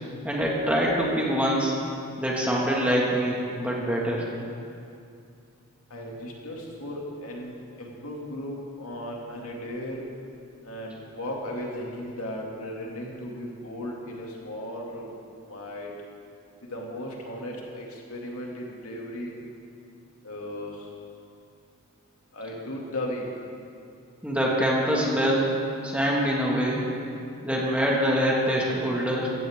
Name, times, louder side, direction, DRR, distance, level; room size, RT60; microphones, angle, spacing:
voice 1, 0.2-1.7 2.2-4.3 24.2-25.5 25.8-26.8 27.4-29.3, equal, 5° right, -4 dB, 2.0 m, -24 dB
voice 2, 5.9-10.1 10.6-15.1 15.5-15.9 16.6-19.3 20.2-20.9 22.3-23.2, left 1 dB, 80° left, -2 dB, 2.5 m, -36 dB
16.0 x 15.0 x 3.7 m, 2.5 s
head